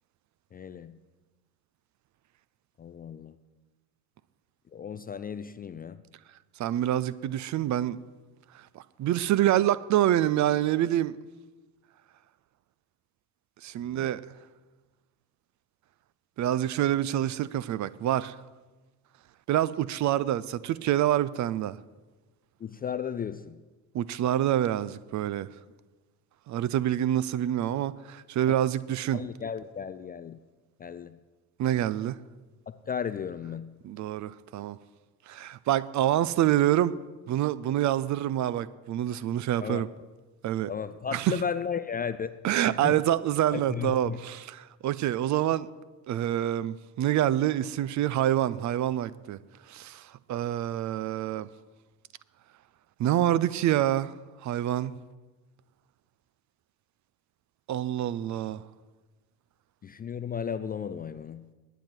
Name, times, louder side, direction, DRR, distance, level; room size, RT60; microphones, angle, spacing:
voice 1, 0.5-1.0 2.8-3.4 4.7-6.0 13.9-14.1 22.6-23.6 29.1-30.4 30.8-31.2 32.7-33.8 39.6-39.8 40.7-42.3 42.6-43.0 43.5-44.2 59.8-61.5, left 7 dB, 20° left, 0.4 m, -35 dB
voice 2, 6.6-8.0 8.5-11.2 13.6-14.2 16.4-18.4 19.5-21.8 23.9-25.5 26.5-29.2 31.6-32.2 33.8-34.8 35.3-37.0 37.3-39.9 40.4-40.7 41.1-41.3 42.4-45.7 46.1-49.4 49.7-51.5 53.0-54.2 54.4-55.0 57.7-58.6, right 12 dB, 40° right, 0.5 m, -27 dB
21.0 x 8.9 x 4.5 m
figure-of-eight pair, 50°, 48 cm